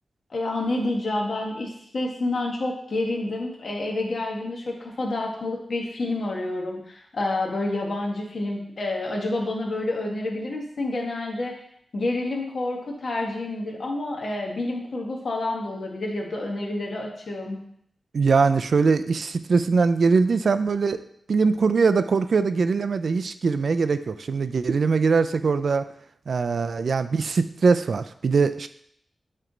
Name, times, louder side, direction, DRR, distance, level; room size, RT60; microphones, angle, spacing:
voice 1, 0.3-11.5 11.9-17.6, left 2 dB, 60° left, 0 dB, 1.2 m, -28 dB
voice 2, 18.1-21.0 21.3-25.8 26.3-28.7, right 4 dB, 70° right, 11 dB, 0.3 m, -22 dB
7.6 x 3.2 x 3.8 m, 0.69 s
wide cardioid pair, 95°, 0 cm